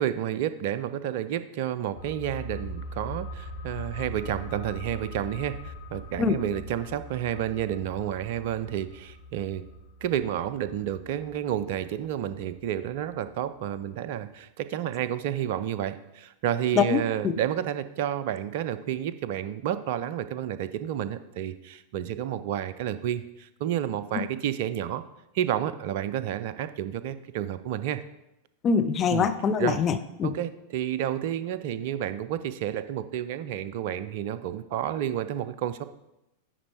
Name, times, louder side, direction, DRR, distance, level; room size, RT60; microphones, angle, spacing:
voice 1, 0.0-9.6 10.0-25.0 25.3-28.0 29.1-29.3 29.6-29.8 30.2-35.8, right 10 dB, 50° right, 13 dB, 0.5 m, -30 dB
sound 1, 2.0-13.3 13.6-13.7, equal, 55° left, 1.3 m, -41 dB
voice 2, 28.6-30.3, left 6 dB, 30° left, 9 dB, 0.6 m, -24 dB
10.0 x 4.3 x 4.7 m, 0.89 s
figure-of-eight pair, 90°, 0 cm